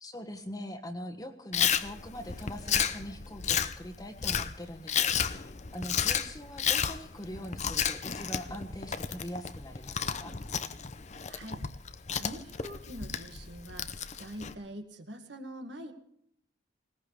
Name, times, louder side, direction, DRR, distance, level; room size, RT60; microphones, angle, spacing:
voice 1, 0.0-10.3, equal, 20° left, 4 dB, 1.5 m, -42 dB
Chewing mastication, 1.5-14.5, left 8 dB, 40° left, 0.7 m, -32 dB
voice 2, 11.2-11.6 12.1-15.9, equal, 70° right, 5 dB, 2.1 m, -44 dB
20.0 x 19.0 x 3.4 m, 0.70 s
head